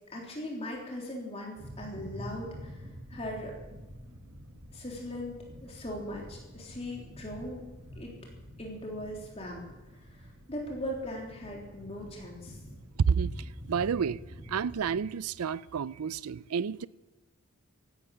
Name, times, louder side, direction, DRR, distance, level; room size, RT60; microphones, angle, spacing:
voice 1, 0.1-2.7 3.1-3.5 4.7-7.6 7.9-8.1 8.6-9.6 10.5-12.5, left 1 dB, 30° left, 3.4 m, -39 dB
sound 1, 1.6-15.0, equal, 50° right, 1.9 m, -47 dB
voice 2, 13.7-14.2 14.5-16.9, right 6 dB, 90° right, 0.4 m, -30 dB
15.5 x 12.0 x 6.5 m
head